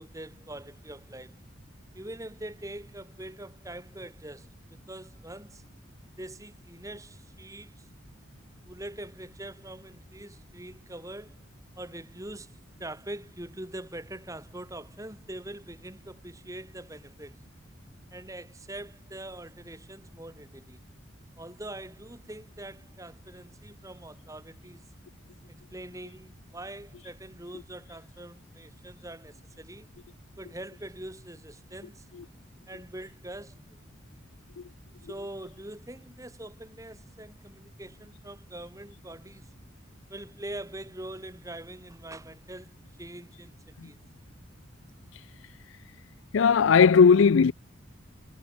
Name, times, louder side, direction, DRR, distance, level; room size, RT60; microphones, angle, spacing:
voice 1, 0.0-1.4 1.9-5.6 6.2-7.9 8.6-11.4 11.8-17.4 18.1-20.8 21.4-24.9 25.7-29.9 30.4-32.1 32.7-33.8 35.1-39.5 40.1-44.0, right 1 dB, 15° right, 2.2 m, -43 dB
voice 2, 46.3-47.5, left 6 dB, 70° left, 0.4 m, -18 dB
head